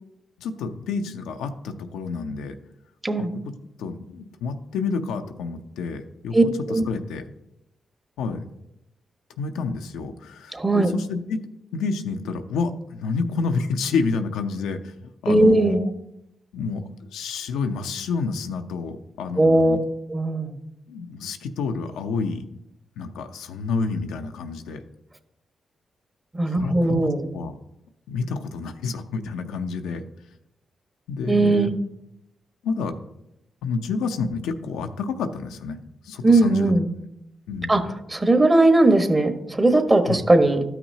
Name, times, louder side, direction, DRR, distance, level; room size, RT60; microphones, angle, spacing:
voice 1, 0.4-2.6 3.2-3.3 3.8-6.4 6.7-7.2 8.2-8.4 9.4-11.4 11.7-14.9 15.2-15.9 16.5-16.8 17.1-19.8 20.9-22.5 23.0-24.8 26.5-27.5 28.1-30.0 31.1-31.7 32.6-32.9 33.6-35.8 36.0-36.7 37.5-37.9 40.1-40.2, left 4 dB, 85° left, 6 dB, 0.6 m, -29 dB
voice 2, 6.3-6.9 10.5-10.9 15.3-15.8 19.4-19.8 20.1-20.5 26.4-27.3 31.2-31.7 36.2-36.9 37.7-37.8 38.1-40.6, right 2 dB, 30° right, 7 dB, 1.2 m, -18 dB
12.5 x 5.8 x 2.7 m, 0.85 s
supercardioid pair, 40°, 0 cm